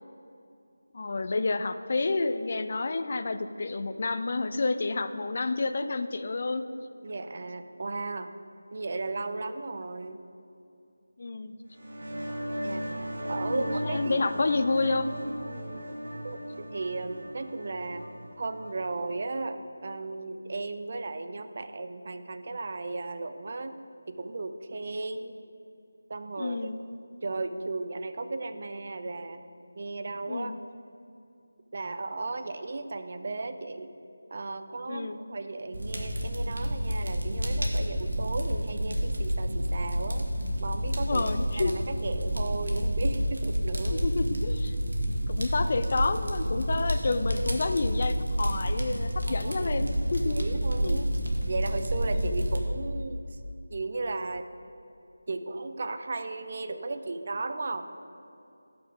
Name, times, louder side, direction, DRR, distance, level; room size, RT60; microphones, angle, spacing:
voice 1, 0.9-6.6 11.2-11.5 13.5-15.1 26.4-26.8 30.3-30.6 34.9-35.2 41.1-41.7 43.9-44.8 45.3-50.4 50.8-51.0 52.1-52.5, left 3 dB, 45° left, 10 dB, 0.4 m, -29 dB
voice 2, 7.0-8.3 8.7-10.2 12.6-12.8 13.3-14.2 15.5-15.9 16.2-18.1 18.4-23.8 24.1-25.3 26.1-26.7 27.2-29.4 29.8-30.5 31.7-33.9 34.3-40.3 40.6-41.2 41.6-44.1 49.3-49.9 50.2-51.1 51.5-53.4 53.7-54.5 55.3-57.9, right 3 dB, 45° right, 10 dB, 0.5 m, -35 dB
sound 1, 11.7-19.1, equal, 65° right, 1.4 m, -37 dB
Fire, 35.7-52.6, equal, 85° right, 1.4 m, -29 dB
12.0 x 5.9 x 3.6 m, 2.6 s
figure-of-eight pair, 165°, 0 cm